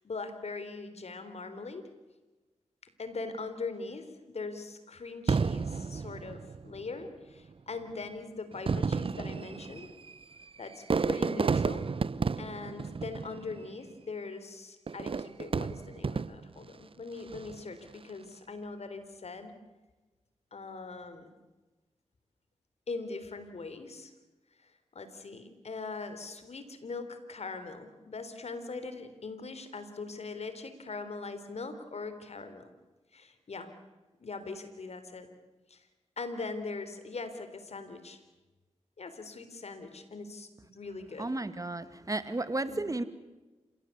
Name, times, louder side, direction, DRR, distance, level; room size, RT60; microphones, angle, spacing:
voice 1, 0.0-1.9 3.0-9.9 10.6-11.9 12.4-19.6 20.5-21.3 22.9-24.1 24.9-32.7 33.1-33.7 34.2-35.3 35.7-35.8 36.2-38.2 39.0-41.3 42.7-42.9, left 3 dB, 65° left, 10 dB, 3.7 m, -41 dB
Fireworks, 5.3-6.9 7.7-7.8 8.5-13.8 14.9-16.6 17.2-17.7, right 5 dB, 50° right, 0.7 m, -32 dB
voice 2, 41.2-43.0, right 2 dB, 30° right, 12 dB, 2.2 m, -33 dB
28.0 x 17.0 x 8.3 m, 1.2 s
cardioid pair, 50°, 12 cm